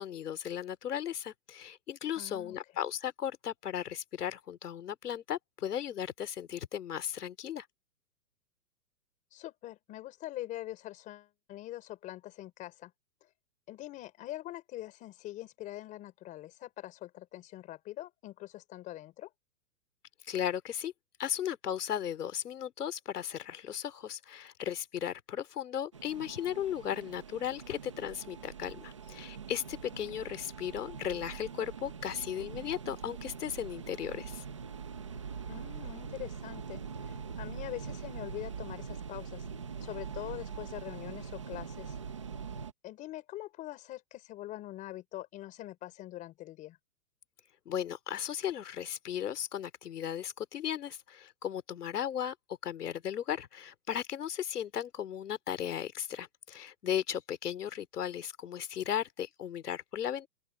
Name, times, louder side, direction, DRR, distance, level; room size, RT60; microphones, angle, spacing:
voice 1, 0.0-7.7 20.2-20.9 21.2-34.4 47.7-60.3, left 9 dB, 70° left, 2.9 m, -36 dB
voice 2, 2.1-2.6 9.3-12.9 13.7-19.3 29.9-30.3 35.5-39.4 39.8-41.9 42.8-46.8, left 15 dB, 15° left, 4.9 m, -44 dB
sound 1, 25.9-42.7, right 6 dB, 20° right, 0.6 m, -43 dB
open air
hypercardioid pair, 175°, 48 cm